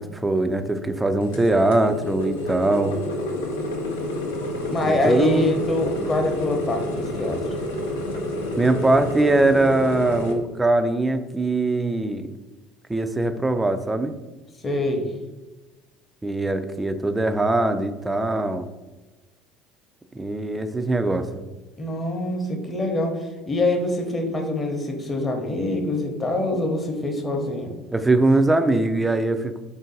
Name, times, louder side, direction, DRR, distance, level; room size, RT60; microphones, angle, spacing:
voice 1, 0.0-3.0 4.8-5.5 8.6-12.3 12.9-14.2 16.2-18.7 20.2-21.4 27.9-29.6, right 2 dB, 15° right, 9 dB, 0.4 m, -22 dB
sound 1, 1.2-10.3, left 1 dB, 85° left, 0.6 m, -29 dB
voice 2, 4.7-7.4 14.6-15.1 21.8-27.7, left 2 dB, 25° left, 3 dB, 0.8 m, -25 dB
3.7 x 2.6 x 3.9 m, 1.2 s
hypercardioid pair, 70°, 0 cm